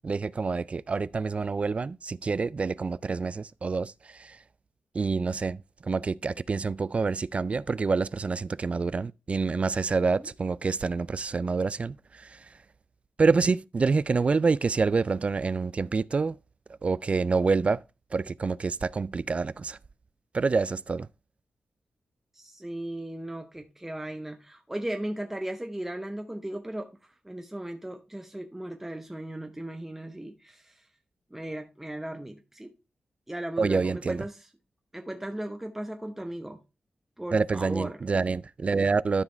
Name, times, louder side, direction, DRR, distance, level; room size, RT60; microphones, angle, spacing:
voice 1, 0.0-4.4 4.9-12.4 13.2-16.4 16.8-17.8 18.1-19.8 20.3-21.1 33.6-34.2 37.3-39.2, right 4 dB, 40° right, 0.3 m, -27 dB
voice 2, 22.3-27.0 27.2-30.7 31.3-32.7 33.3-34.4 34.9-36.6 37.2-38.0, right 1 dB, 10° right, 0.9 m, -36 dB
12.5 x 5.0 x 3.3 m
cardioid pair, 70°, 3 cm